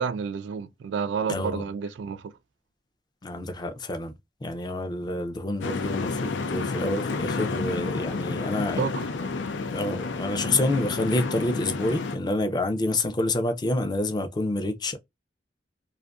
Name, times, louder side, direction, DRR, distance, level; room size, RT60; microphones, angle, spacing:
voice 1, 0.0-2.3 8.8-9.1, right 6 dB, 80° right, 0.3 m, -30 dB
voice 2, 1.3-1.6 3.2-4.1 4.4-8.8 9.6-15.0, left 2 dB, 25° left, 0.4 m, -28 dB
sound 1, 5.6-12.2, left 4 dB, 85° left, 0.5 m, -30 dB
2.5 x 2.5 x 2.2 m
head